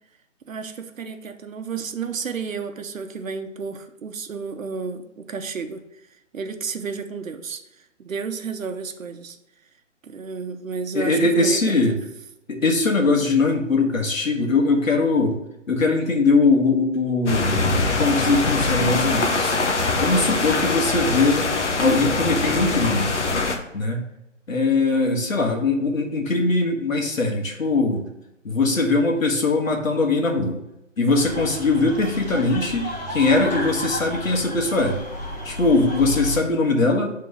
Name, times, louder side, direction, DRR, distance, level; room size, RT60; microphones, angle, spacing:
voice 1, 0.4-5.8 6.3-7.6 8.0-9.4 10.0-11.9 21.8-22.0, right 5 dB, 85° right, 6 dB, 0.9 m, -32 dB
voice 2, 10.9-11.9 12.5-15.4 15.7-19.6 20.0-21.5 21.8-23.1 23.7-24.0 24.5-28.0 28.4-30.6 31.0-35.0 35.4-37.1, left 3 dB, 85° left, 2 dB, 1.6 m, -21 dB
sound 1, 17.3-23.6, left 3 dB, 65° left, 1.0 m, -23 dB
sound 2, 31.1-36.4, left 1 dB, 35° left, 1.4 m, -32 dB
6.9 x 3.8 x 3.6 m, 0.90 s
hypercardioid pair, 170°, 39 cm